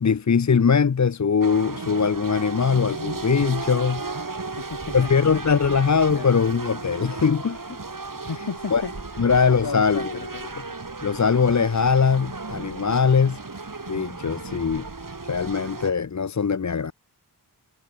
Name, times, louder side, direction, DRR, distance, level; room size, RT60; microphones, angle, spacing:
voice 1, 0.0-4.0 4.9-7.6 8.7-8.8 9.2-10.1 11.0-13.4 13.9-14.9 15.3-16.9, left 6 dB, 45° left, 0.6 m, -21 dB
sound 1, 1.4-15.9, right 3 dB, 50° right, 2.2 m, -35 dB
voice 2, 4.6-5.1 5.4-5.5 6.1-6.3 8.3-9.3 9.6-10.5, left 4 dB, 60° left, 1.7 m, -34 dB
wide cardioid pair, 50°, 41 cm